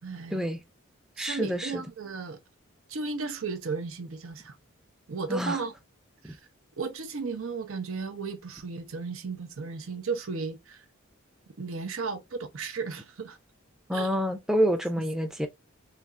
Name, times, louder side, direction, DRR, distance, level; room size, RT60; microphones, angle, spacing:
voice 1, 0.0-0.6 1.2-2.4 2.9-4.6 5.1-5.7 6.2-6.4 6.8-10.8 11.6-13.4 13.9-14.1, right 4 dB, 85° right, 0.7 m, -35 dB
voice 2, 1.2-1.8 5.3-5.6 6.2-6.4 13.9-15.5, equal, ahead, 0.4 m, -27 dB
3.4 x 2.9 x 2.4 m
head